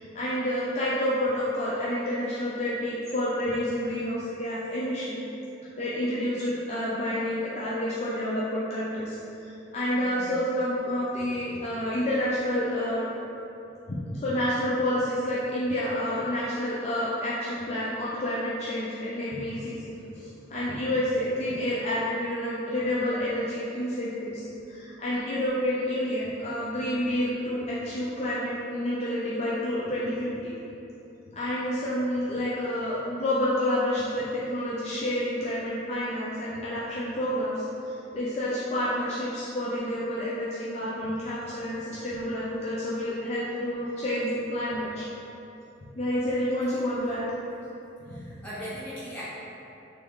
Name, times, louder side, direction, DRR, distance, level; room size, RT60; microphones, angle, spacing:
voice 1, 0.0-5.2 5.8-13.1 13.9-30.5 31.3-45.1 46.0-47.3 48.2-48.3, left 1 dB, 35° left, -8 dB, 0.5 m, -29 dB
voice 2, 9.9-10.3 48.1-49.2, equal, 5° left, -11 dB, 1.0 m, -39 dB
3.5 x 3.2 x 3.6 m, 2.9 s
head